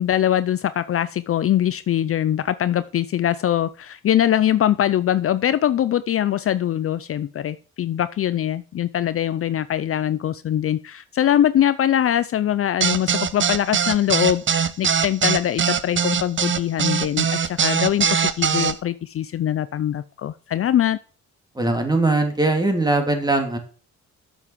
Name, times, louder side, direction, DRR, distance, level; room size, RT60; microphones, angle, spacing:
voice 1, 0.0-21.0, left 11 dB, 50° left, 14 dB, 0.5 m, -22 dB
sound 1, 12.8-18.7, right 7 dB, 40° right, 0.8 m, -21 dB
voice 2, 21.5-23.6, right 2 dB, 15° right, 4 dB, 2.8 m, -20 dB
7.8 x 7.2 x 7.2 m, 0.40 s
cardioid pair, 90°, 30 cm